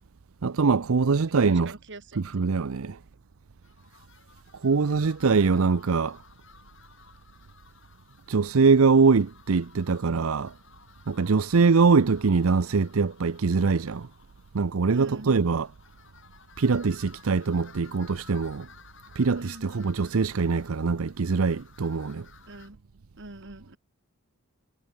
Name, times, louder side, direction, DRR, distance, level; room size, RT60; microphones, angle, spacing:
voice 1, 0.4-1.7 2.2-3.0 4.6-6.2 8.3-10.5 11.1-14.1 14.5-15.7 16.6-18.7 19.2-22.3, right 4 dB, 85° right, 0.6 m, -23 dB
voice 2, 1.5-2.2 14.9-15.4 19.4-19.7 22.5-22.8 23.2-23.8, right 2 dB, 60° right, 2.9 m, -43 dB
sound 1, 3.6-22.7, left 6 dB, 65° left, 7.9 m, -55 dB
head